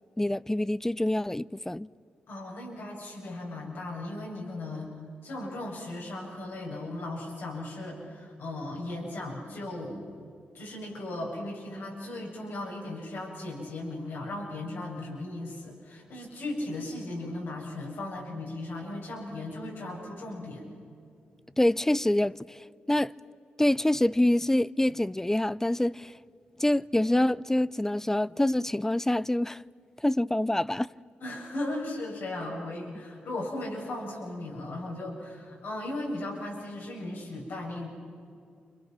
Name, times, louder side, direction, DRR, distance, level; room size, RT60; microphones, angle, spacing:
voice 1, 0.2-1.9 21.6-22.6 22.9-23.1 23.6-26.1 26.6-29.6 30.0-30.9, left 1 dB, 10° left, 0.5 m, -26 dB
voice 2, 2.3-4.9 5.2-10.1 10.5-20.6 31.2-37.9, left 2 dB, 75° left, 8.0 m, -37 dB
29.5 x 26.0 x 6.0 m
cardioid pair, 60°, 4 cm